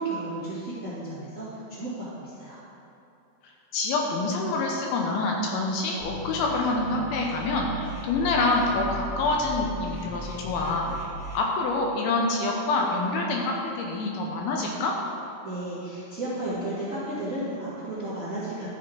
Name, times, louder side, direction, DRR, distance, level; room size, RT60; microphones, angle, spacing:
voice 1, 0.0-2.6 15.4-18.7, right 2 dB, 85° right, -11 dB, 0.7 m, -33 dB
voice 2, 3.7-10.9 11.3-14.9, left 3 dB, 75° left, 0 dB, 2.4 m, -26 dB
sound 1, 6.0-11.4, right 1 dB, 45° left, 3.5 m, -38 dB
12.5 x 7.1 x 3.8 m, 2.8 s
omnidirectional pair, 5.0 m